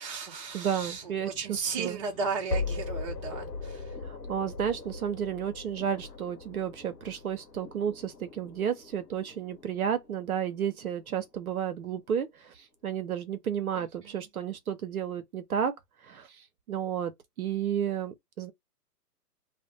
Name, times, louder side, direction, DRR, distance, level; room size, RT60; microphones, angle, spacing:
voice 1, 0.0-4.0 13.7-14.3, right 5 dB, 20° right, 0.7 m, -35 dB
voice 2, 0.5-2.0 4.0-15.8 16.0-17.1 17.4-18.5, right 8 dB, 60° right, 0.7 m, -32 dB
sound 1, 0.7-11.7, left 3 dB, 90° left, 1.1 m, -40 dB
2.5 x 2.1 x 3.8 m
figure-of-eight pair, 140°, 49 cm